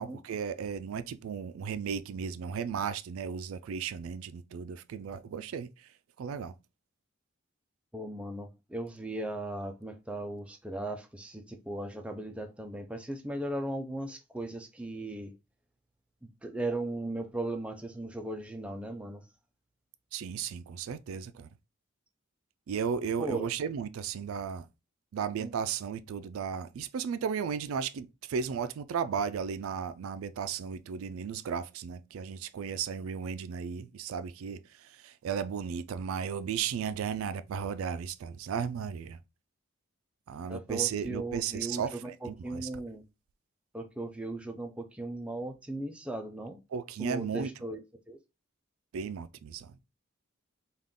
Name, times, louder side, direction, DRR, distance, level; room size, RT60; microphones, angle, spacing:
voice 1, 0.0-5.7 6.2-6.5 20.1-21.5 22.7-24.7 25.1-39.2 40.3-42.7 46.7-47.5 48.9-49.8, right 7 dB, 85° right, 0.3 m, -35 dB
voice 2, 7.9-15.3 16.2-19.2 23.2-23.5 25.4-25.5 40.5-43.0 43.7-46.6 47.0-47.8 48.1-48.2, right 1 dB, 5° right, 0.3 m, -37 dB
3.6 x 2.3 x 3.6 m
head